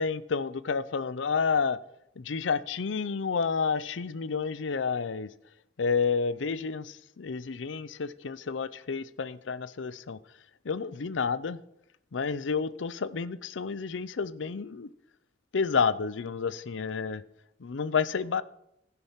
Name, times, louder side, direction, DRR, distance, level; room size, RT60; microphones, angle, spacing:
voice 1, 0.0-1.8 2.2-5.3 5.8-10.2 10.6-11.6 12.1-14.9 15.5-17.2 17.6-18.4, left 5 dB, 90° left, 0.6 m, -30 dB
16.0 x 5.9 x 5.7 m
head